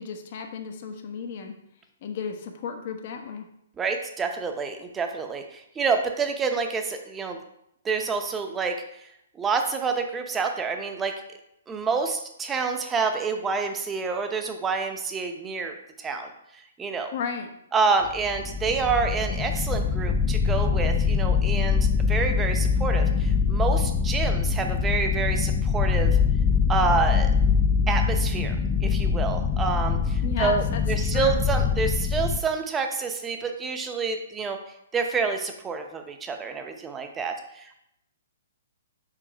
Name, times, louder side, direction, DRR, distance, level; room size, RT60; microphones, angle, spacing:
voice 1, 0.0-1.5 2.0-3.5 17.1-17.5 30.2-31.4, left 6 dB, 50° left, 5 dB, 0.9 m, -33 dB
voice 2, 3.8-7.4 7.8-8.8 9.4-11.1 11.7-17.1 17.7-26.2 26.7-27.3 27.9-28.6 28.8-34.6 34.9-37.7, right 5 dB, 15° right, 5 dB, 0.7 m, -28 dB
sound 1, 18.1-32.4, left 5 dB, 20° left, 0.4 m, -23 dB
5.0 x 3.9 x 5.0 m, 0.77 s
hypercardioid pair, 140°, 0 cm